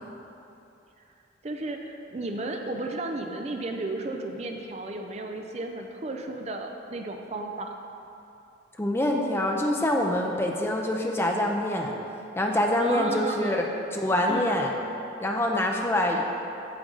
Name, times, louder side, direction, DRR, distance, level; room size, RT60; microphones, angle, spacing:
voice 1, 1.4-7.7 12.8-13.7 14.3-14.6, right 2 dB, 35° right, 3 dB, 0.5 m, -34 dB
voice 2, 8.8-12.0 12.4-13.7 13.9-14.7 15.2-16.5, left 1 dB, 15° left, 1 dB, 0.6 m, -25 dB
8.6 x 7.8 x 3.8 m, 2.8 s
head